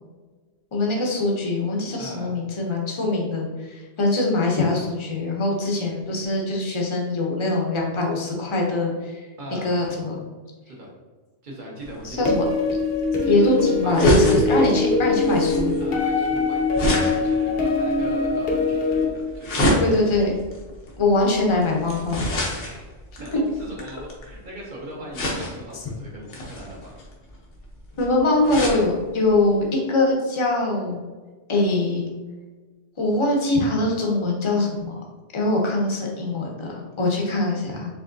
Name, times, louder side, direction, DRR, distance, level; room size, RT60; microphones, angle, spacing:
voice 1, 0.7-9.2 9.5-10.2 12.0-12.5 13.3-15.7 19.8-20.3 21.0-22.2 28.0-31.0 31.5-32.1 33.0-34.9 35.3-38.0, left 2 dB, 30° left, -1 dB, 0.7 m, -22 dB
voice 2, 2.0-2.3 9.4-9.7 10.7-10.9 11.4-12.3 13.1-14.1 15.8-20.0 22.6-22.8 23.2-26.9, right 1 dB, 45° right, -4 dB, 1.3 m, -39 dB
sound 1, 11.8-24.4 25.1-25.8 26.3-28.8 29.3-29.4 29.6-29.7, equal, 85° left, 1.3 m, -28 dB
sound 2, 12.3-19.0, left 3 dB, 60° left, 1.0 m, -22 dB
4.8 x 3.4 x 2.6 m, 1.3 s
omnidirectional pair, 1.2 m